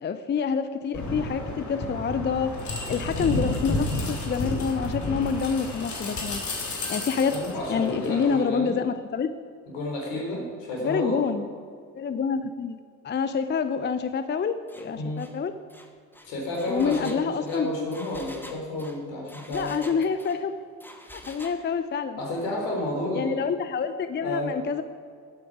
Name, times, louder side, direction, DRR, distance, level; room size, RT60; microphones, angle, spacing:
voice 1, 0.0-2.6 2.9-6.4 6.9-7.4 7.7-9.3 10.8-11.5 11.9-12.8 13.0-15.5 16.7-17.7 19.5-20.5 21.1-22.2 23.1-24.8, left 6 dB, 25° left, 11 dB, 0.7 m, -27 dB
sound 1, 0.9-8.4, left 2 dB, 40° left, 3.4 m, -31 dB
voice 2, 7.1-8.7 9.7-11.2 15.0-15.2 16.3-20.0 22.2-23.4 24.2-24.5, left 1 dB, 70° left, -1 dB, 4.2 m, -31 dB
Engine, 14.7-14.9 15.2-15.4 15.7-20.4 20.8-21.6, left 1 dB, 5° left, 1.7 m, -46 dB
19.0 x 8.5 x 4.9 m, 2.2 s
hypercardioid pair, 55°, 44 cm